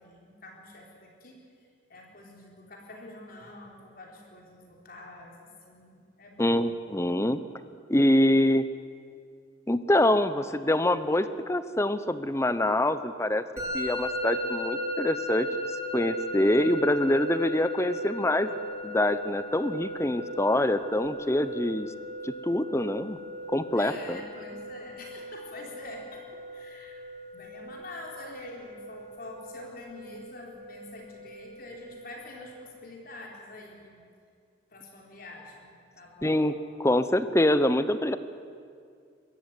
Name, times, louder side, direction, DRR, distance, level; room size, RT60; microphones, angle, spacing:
voice 1, 0.0-6.7 23.7-27.0 27.3-34.0 34.7-35.7 36.0-36.4, left 2 dB, 50° left, -1 dB, 4.2 m, -46 dB
voice 2, 6.4-7.4 7.9-8.7 9.7-13.4 13.7-15.5 15.9-18.5 18.8-21.9 22.2-23.2 23.5-24.2 36.2-36.5 36.8-38.2, left 1 dB, 15° left, 12 dB, 0.8 m, -25 dB
Musical instrument, 13.6-32.5, equal, 15° right, 3.9 m, -37 dB
23.5 x 14.0 x 9.8 m, 2.2 s
head